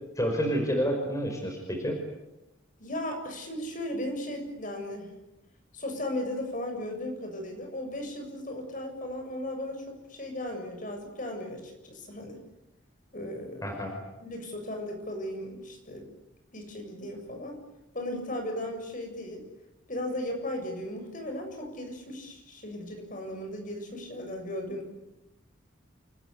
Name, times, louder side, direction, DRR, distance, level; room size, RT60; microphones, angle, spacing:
voice 1, 0.2-2.0 13.6-13.9, equal, 15° left, 2 dB, 5.3 m, -29 dB
voice 2, 2.8-5.1 5.7-12.4 13.1-13.8 14.2-16.1 16.5-17.6 17.9-19.4 19.9-24.9, left 1 dB, 40° left, 4 dB, 7.3 m, -36 dB
29.5 x 20.0 x 9.7 m, 0.93 s
head